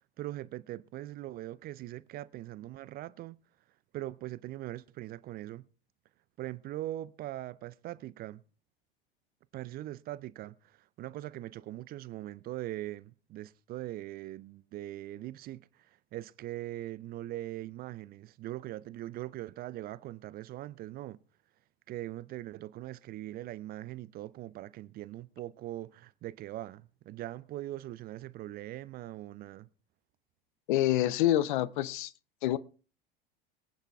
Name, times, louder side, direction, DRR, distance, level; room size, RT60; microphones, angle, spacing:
voice 1, 0.2-3.4 3.9-5.7 6.4-8.4 9.5-21.2 21.9-29.7, right 15 dB, 30° right, 0.5 m, -41 dB
voice 2, 30.7-32.1 32.4-32.6, left 14 dB, 55° left, 0.9 m, -27 dB
22.5 x 9.0 x 3.4 m
figure-of-eight pair, 75°, 29 cm